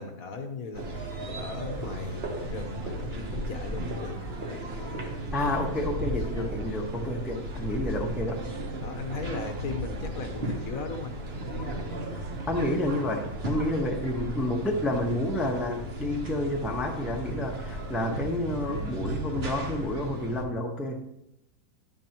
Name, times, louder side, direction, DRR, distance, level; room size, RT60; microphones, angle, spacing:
voice 1, 0.0-4.2 8.8-11.2 17.9-18.1, left 4 dB, 60° left, 6 dB, 1.2 m, -38 dB
sound 1, 0.7-20.4, right 1 dB, 40° right, 1.3 m, -35 dB
voice 2, 5.3-8.4 12.5-21.0, left 1 dB, ahead, 1 dB, 0.7 m, -29 dB
sound 2, 8.3-10.9, right 4 dB, 55° right, 0.6 m, -48 dB
11.5 x 9.4 x 3.0 m, 0.83 s
omnidirectional pair, 1.8 m